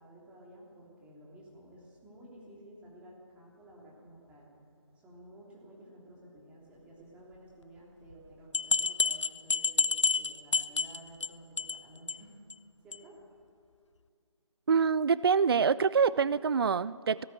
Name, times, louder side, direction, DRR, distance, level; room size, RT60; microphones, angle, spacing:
voice 1, 0.0-4.5 4.9-12.3 12.8-13.4, right 1 dB, 5° right, -4 dB, 3.2 m, -53 dB
sound 1, 8.1-8.2 8.5-11.3 11.6-11.8 12.1-12.2 12.5-12.6 12.9-13.0, left 4 dB, 65° left, 0.7 m, -29 dB
voice 2, 14.7-17.2, right 6 dB, 50° right, 19 dB, 0.4 m, -25 dB
18.5 x 17.5 x 9.0 m, 2.3 s
figure-of-eight pair, 155°, 17 cm